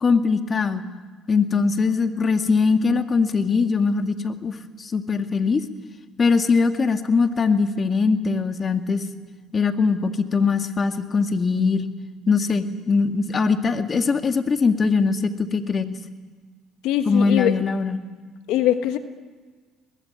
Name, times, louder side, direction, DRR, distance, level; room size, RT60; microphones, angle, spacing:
voice 1, 0.0-0.8 1.3-5.6 6.2-9.1 9.5-11.9 12.3-16.0 17.1-18.0, left 4 dB, 35° left, 7 dB, 2.0 m, -21 dB
voice 2, 16.8-17.5 18.5-19.0, left 12 dB, 75° left, 9 dB, 1.2 m, -21 dB
23.5 x 20.5 x 9.4 m, 1.4 s
supercardioid pair, 70°, 0 cm